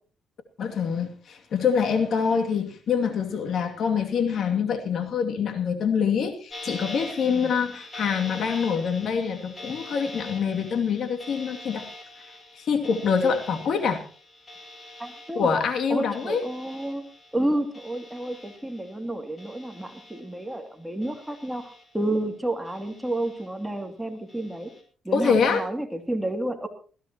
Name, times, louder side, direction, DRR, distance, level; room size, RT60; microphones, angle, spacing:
voice 1, 0.6-11.9 12.6-14.0 15.3-16.4 25.1-25.7, left 6 dB, 65° left, 5 dB, 2.5 m, -25 dB
sound 1, 6.5-19.1 19.4-20.6 21.0-22.2 22.6-23.7 24.3-24.8, left 2 dB, 30° left, 5.1 m, -44 dB
voice 2, 15.0-15.5 15.9-17.0 17.3-21.7 21.9-24.7 25.0-26.7, right 1 dB, 5° right, 5 dB, 2.6 m, -30 dB
20.5 x 15.5 x 3.0 m, 0.38 s
cardioid pair, 90°, 0 cm